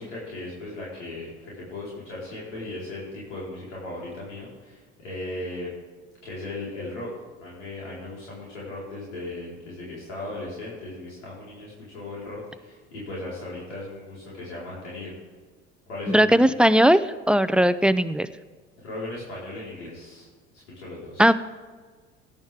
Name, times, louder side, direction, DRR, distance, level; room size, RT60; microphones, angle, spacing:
voice 1, 0.0-5.7 6.2-7.1 7.4-15.1 15.9-16.4 18.8-20.3 20.7-21.3, left 2 dB, 80° left, -7 dB, 4.5 m, -37 dB
voice 2, 16.1-17.0 17.3-18.3 21.2-21.3, equal, 5° right, 13 dB, 0.5 m, -18 dB
17.5 x 11.0 x 3.6 m, 1.5 s
hypercardioid pair, 75°, 34 cm